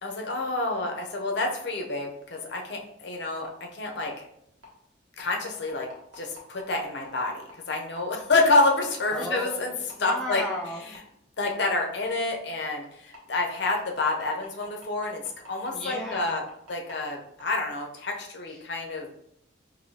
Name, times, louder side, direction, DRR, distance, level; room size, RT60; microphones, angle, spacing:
voice 1, 0.0-4.3 5.2-5.9 6.1-9.7 10.0-10.4 10.8-11.0 11.4-16.4 16.7-19.1, left 3 dB, 55° left, 1 dB, 0.7 m, -28 dB
sound 1, 3.4-3.5 4.0-4.1 4.6-4.7 5.2-8.9 9.4-9.5 9.9-10.0 10.4-10.5 10.9-11.0 11.5-11.6 12.1-12.2 12.6-12.7 13.1-16.9 17.4-17.5, left 2 dB, 85° right, 1.3 m, -47 dB
voice 2, 9.1-10.8 15.7-16.4 18.5-18.6, equal, 5° left, -2 dB, 0.3 m, -35 dB
4.7 x 2.7 x 2.8 m, 0.73 s
head